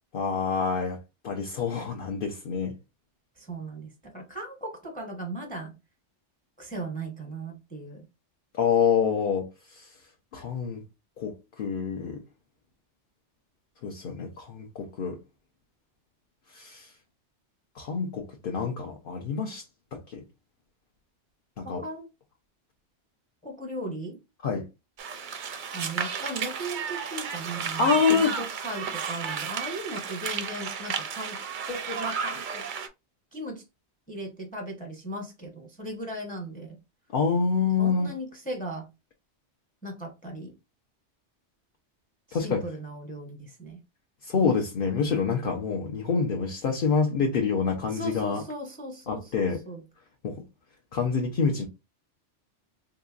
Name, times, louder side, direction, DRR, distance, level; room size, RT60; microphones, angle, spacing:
voice 1, 0.1-1.0 1.2-2.7 8.6-9.9 10.3-10.8 11.2-12.2 13.8-15.2 16.5-16.9 17.8-19.6 19.9-20.2 21.6-21.8 24.4-24.7 27.8-28.4 37.1-38.1 42.3-42.6 44.2-48.4 49.1-49.6 50.2-50.4 50.9-51.6, left 5 dB, 55° left, 0.8 m, -27 dB
voice 2, 3.4-5.7 6.6-8.1 21.6-22.1 23.4-24.2 25.7-31.4 31.7-32.6 33.3-33.6 34.1-36.8 37.8-38.9 39.8-40.5 42.3-43.8 47.9-49.8, right 1 dB, 10° left, 0.7 m, -37 dB
sound 1, 25.0-32.9, right 6 dB, 55° right, 0.6 m, -33 dB
3.8 x 2.9 x 2.4 m
omnidirectional pair, 1.2 m